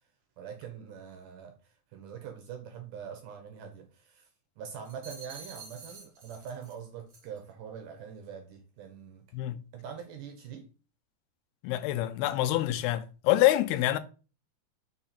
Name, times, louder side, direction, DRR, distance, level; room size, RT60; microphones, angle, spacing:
voice 1, 0.4-4.3 4.6-9.2 9.7-10.7, right 7 dB, 75° right, 2.0 m, -44 dB
sound 1, 4.8-6.8 7.1-7.4, right 4 dB, 45° right, 1.4 m, -48 dB
voice 2, 11.6-14.0, left 14 dB, 85° left, 2.6 m, -26 dB
5.8 x 4.3 x 4.2 m
omnidirectional pair, 4.6 m